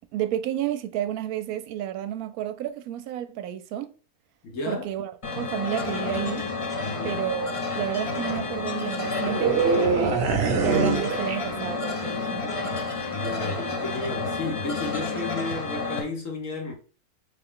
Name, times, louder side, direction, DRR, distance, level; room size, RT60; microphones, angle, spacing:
voice 1, 0.1-3.9 4.7-6.5 7.0-12.5, right 11 dB, 80° right, 1.0 m, -31 dB
voice 2, 4.4-4.9 6.8-7.2 13.1-16.7, left 3 dB, 65° left, 1.3 m, -33 dB
sound 1, 5.2-16.0, left 3 dB, 35° left, 0.5 m, -30 dB
sound 2, 9.2-11.9 12.2-12.5, right 4 dB, 55° right, 0.9 m, -24 dB
3.7 x 3.3 x 3.7 m
omnidirectional pair, 1.5 m